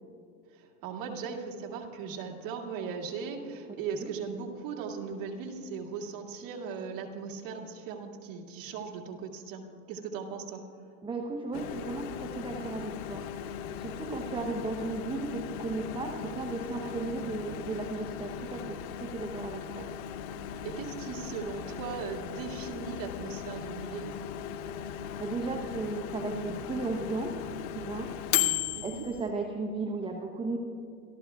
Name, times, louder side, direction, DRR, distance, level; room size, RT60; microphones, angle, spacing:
voice 1, 0.5-10.6 20.6-24.2 28.7-29.1, right 6 dB, 55° right, 0 dB, 2.1 m, -38 dB
voice 2, 11.0-19.9 24.9-27.4 27.8-28.2 28.8-30.6, right 3 dB, 10° right, 2 dB, 0.8 m, -35 dB
Microwave oven, 11.5-29.3, left 10 dB, 80° left, 0.9 m, -37 dB
26.5 x 14.0 x 2.3 m, 2.4 s
supercardioid pair, 135°, 42 cm